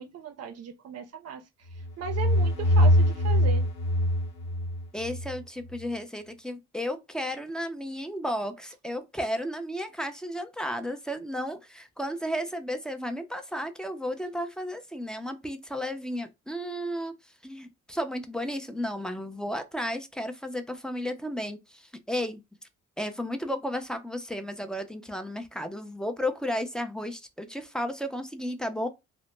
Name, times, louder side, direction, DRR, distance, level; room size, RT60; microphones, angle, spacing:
voice 1, 0.0-3.7, right 7 dB, 55° right, 0.5 m, -37 dB
sound 1, 1.7-5.4, equal, 70° left, 0.9 m, -23 dB
voice 2, 4.9-17.1 17.4-22.4 23.0-28.9, equal, 5° left, 0.3 m, -33 dB
2.0 x 2.0 x 3.1 m
cardioid pair, 90°, 30 cm